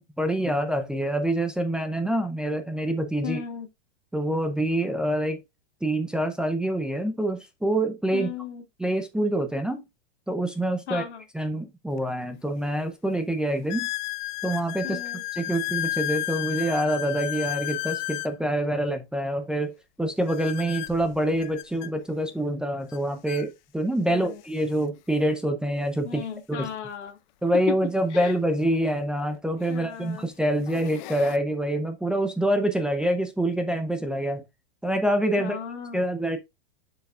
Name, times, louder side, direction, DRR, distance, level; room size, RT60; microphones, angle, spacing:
voice 1, 0.0-3.4 4.1-5.4 5.8-8.3 8.8-9.8 10.3-11.0 11.3-13.9 14.4-15.0 15.3-26.7 27.4-34.4 34.8-35.6 35.9-36.4, right 1 dB, ahead, 0.5 m, -26 dB
voice 2, 3.2-3.7 8.1-8.6 10.9-11.2 14.8-15.2 24.1-24.4 26.0-27.2 27.7-27.8 28.1-28.4 29.7-30.2 35.4-36.1, left 8 dB, 85° left, 2.2 m, -35 dB
sound 1, 12.0-12.1 12.7-12.8 13.7-18.3 20.3-21.9 22.9-23.0 23.3-23.5 24.2-24.3 26.6-26.7 28.7-28.8 29.6-29.9 30.4-31.4, left 16 dB, 45° left, 0.6 m, -33 dB
6.8 x 6.6 x 2.4 m
supercardioid pair, 150°, 34 cm